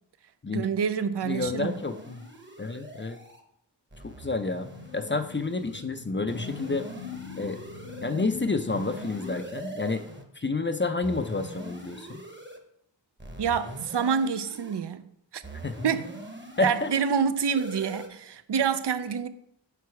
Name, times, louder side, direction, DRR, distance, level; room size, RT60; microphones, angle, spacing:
voice 1, 0.5-1.7 13.4-15.1 15.3-15.4 15.8-16.2 16.6-19.3, right 6 dB, 65° right, 0.5 m, -27 dB
voice 2, 1.2-2.2 2.6-3.2 4.0-4.7 4.9-6.9 7.4-7.6 8.0-10.0 10.4-12.2 15.6-15.8 16.6-16.9, left 3 dB, 25° left, 0.5 m, -29 dB
sound 1, 1.4-3.4 3.9-5.9 6.3-8.2 8.7-10.3 11.0-12.6 13.2-14.8 15.4-17.0 17.6-18.1, right 1 dB, 25° right, 1.0 m, -43 dB
sound 2, 4.4-9.5, left 8 dB, 75° left, 0.9 m, -43 dB
6.0 x 4.7 x 4.7 m
wide cardioid pair, 45°, 45 cm